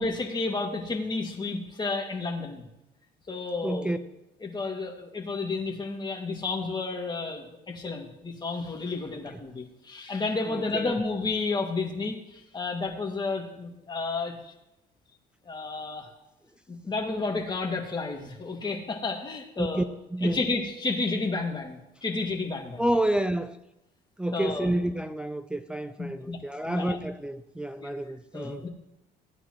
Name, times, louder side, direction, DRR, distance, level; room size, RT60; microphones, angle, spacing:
voice 1, 0.0-2.6 3.3-3.9 4.4-14.4 15.5-16.1 16.7-19.8 20.2-22.8 24.3-24.7 26.0-27.0 27.8-27.9 28.3-28.7, left 3 dB, 25° left, 1 dB, 2.2 m, -31 dB
voice 2, 3.6-4.0 9.3-9.4 10.5-10.9 19.6-19.8 20.1-20.4 22.8-23.6 24.2-28.6, right 1 dB, 5° right, 8 dB, 0.5 m, -29 dB
17.0 x 9.8 x 3.1 m, 0.87 s
cardioid pair, 110°, 17 cm